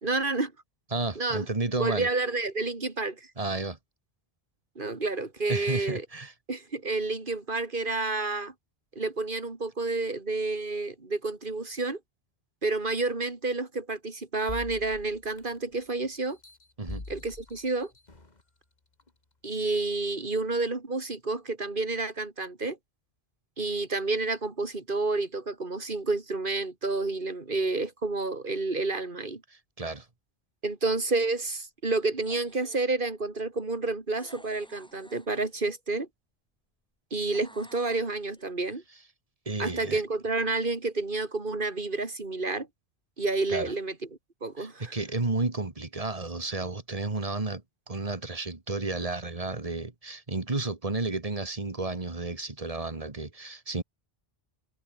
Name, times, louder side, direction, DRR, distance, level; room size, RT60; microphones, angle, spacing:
voice 1, 0.0-0.5 1.2-1.5 1.8-3.2 4.8-6.0 6.5-8.5 8.9-12.0 12.6-16.4 17.1-17.9 19.4-22.8 23.6-29.4 30.6-36.1 37.1-38.8 39.6-42.7 43.2-43.9 44.4-45.0, right 3 dB, 55° right, 2.9 m, -30 dB
voice 2, 0.9-2.1 3.4-3.8 5.5-6.3 16.8-17.0 29.5-30.1 39.5-40.0 43.5-43.7 44.6-53.8, right 3 dB, 35° right, 2.1 m, -32 dB
sound 1, 14.5-15.8 16.3-18.4 19.0-19.1, left 2 dB, 40° left, 2.5 m, -43 dB
sound 2, 32.2-32.9 34.2-35.8 37.3-38.7, equal, 5° left, 6.3 m, -53 dB
omnidirectional pair, 1.1 m